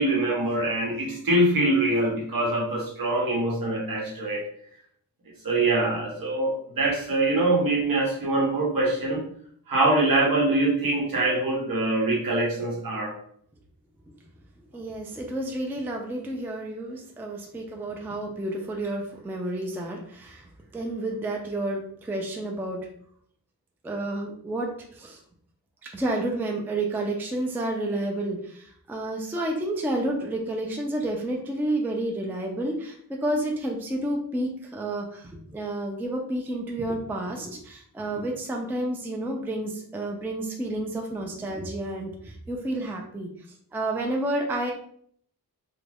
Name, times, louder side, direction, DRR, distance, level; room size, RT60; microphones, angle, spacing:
voice 1, 0.0-4.5 5.4-9.2 9.7-13.1, right 2 dB, 65° right, -2 dB, 1.0 m, -24 dB
voice 2, 14.7-22.8 23.8-25.2 25.8-43.3 43.7-44.7, right 1 dB, 5° right, 0 dB, 0.3 m, -30 dB
2.4 x 2.2 x 3.3 m, 0.64 s
wide cardioid pair, 115°, 37 cm